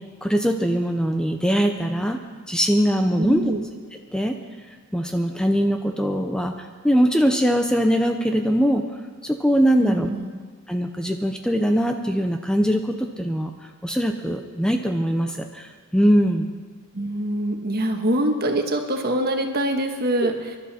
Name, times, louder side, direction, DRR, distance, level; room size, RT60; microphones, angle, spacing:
voice 1, 0.2-2.2 2.5-3.5 4.1-4.3 4.9-8.8 9.2-10.1 10.7-13.5 13.8-16.5 20.2-20.3, equal, 5° left, 4 dB, 0.7 m, -21 dB
voice 2, 3.2-3.6 9.8-10.3 16.9-20.6, right 1 dB, 45° right, 4 dB, 1.5 m, -24 dB
25.5 x 12.0 x 4.3 m, 1.5 s
head